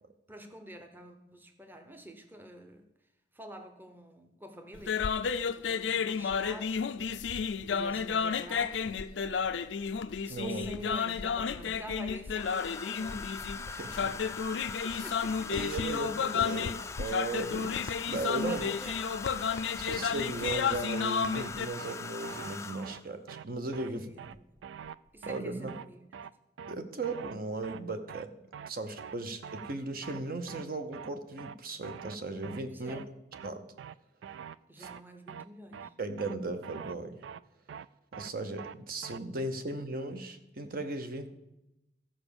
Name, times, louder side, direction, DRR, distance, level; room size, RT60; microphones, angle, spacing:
voice 1, 0.3-2.9 3.3-5.3 5.6-6.9 7.2-7.3 7.7-8.9 10.2-13.4 14.8-16.1 18.0-18.1 18.4-19.1 23.8-24.5 25.1-26.0 32.7-33.1 34.7-35.9, equal, 10° right, 5 dB, 0.7 m, -47 dB
sound 1, 4.8-21.7, left 6 dB, 85° left, 0.5 m, -32 dB
Domestic sounds home sounds, 8.7-8.8 10.2-10.9 12.3-23.1 24.3-24.6 24.8-25.2, left 5 dB, 15° left, 0.3 m, -42 dB
voice 2, 10.3-10.7 13.7-14.4 14.9-15.1 15.5-18.7 19.8-24.1 25.2-25.7 26.7-28.3 28.7-33.0 33.4-33.6 34.8-34.9 36.0-37.2 38.2-41.3, right 2 dB, 50° right, 8 dB, 0.8 m, -37 dB
sound 2, 20.0-20.1 20.4-20.6 20.9-21.0 21.3-21.5 21.8-21.9 22.2-22.6 22.8-23.0 23.3-23.4 23.7-23.9 24.2-24.3 24.6-24.9 25.2-25.4 25.7-25.9 26.1-26.3 26.6-26.8 27.0-27.3 27.6-27.8 28.1-28.3 28.5-28.7 29.0-29.2 29.4-29.8 30.0-30.2 30.5-30.6 30.9-31.1 31.4-31.5 31.8-32.2 32.4-32.6 32.9-33.0 33.3-33.5 33.8-33.9 34.2-34.6 34.8-35.0 35.3-35.4 35.7-35.9 36.2-36.3 36.6-36.9 37.2-37.4 37.7-37.9 38.1-38.3 38.6-38.8 39.0-39.2, right 7 dB, 85° right, 0.3 m, -44 dB
14.0 x 4.9 x 6.9 m, 0.92 s
head